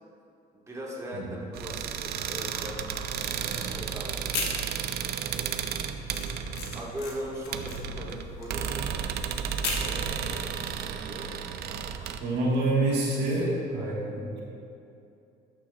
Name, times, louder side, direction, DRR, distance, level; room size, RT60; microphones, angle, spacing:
voice 1, 0.5-2.8 3.2-4.4 5.3-5.7 6.7-8.8 9.7-10.4 10.9-11.3 13.0-14.1, equal, 15° right, -4 dB, 1.5 m, -40 dB
sound 1, 1.5-12.2, right 8 dB, 70° right, 0.4 m, -33 dB
sound 2, 4.2-5.1 5.4-10.0, left 5 dB, 85° left, 1.4 m, -36 dB
voice 2, 12.2-13.5 13.7-14.4, right 2 dB, 90° right, -4 dB, 1.5 m, -27 dB
12.5 x 6.0 x 2.3 m, 2.7 s
cardioid pair, 110°, 17 cm